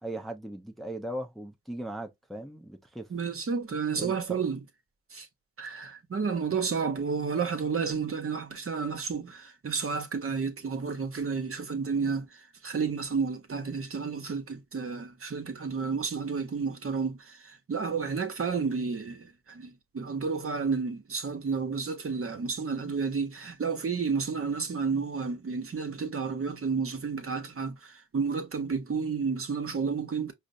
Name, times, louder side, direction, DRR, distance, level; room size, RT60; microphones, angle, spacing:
voice 1, 0.0-3.1 3.9-4.4, right 1 dB, ahead, 0.6 m, -38 dB
voice 2, 3.1-4.6 5.1-5.3 5.6-30.3, right 5 dB, 45° right, 0.9 m, -31 dB
4.9 x 2.1 x 2.5 m
cardioid pair, 55°, 30 cm